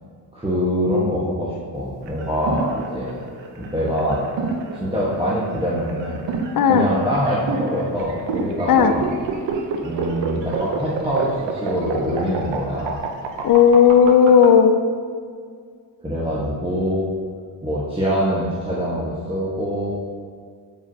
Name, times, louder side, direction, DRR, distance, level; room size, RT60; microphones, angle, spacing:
voice 1, 0.3-3.2 3.6-4.2 4.8-6.2 6.7-9.1 9.8-13.0 16.0-17.1 17.6-19.9, equal, 10° right, -8 dB, 1.3 m, -24 dB
sound 1, 2.0-14.5, right 4 dB, 75° right, 0.8 m, -28 dB
voice 2, 6.6-6.9 8.7-8.9 13.4-14.8, left 7 dB, 50° left, 8 dB, 0.6 m, -13 dB
7.2 x 4.9 x 2.8 m, 2.1 s
cardioid pair, 75°, 44 cm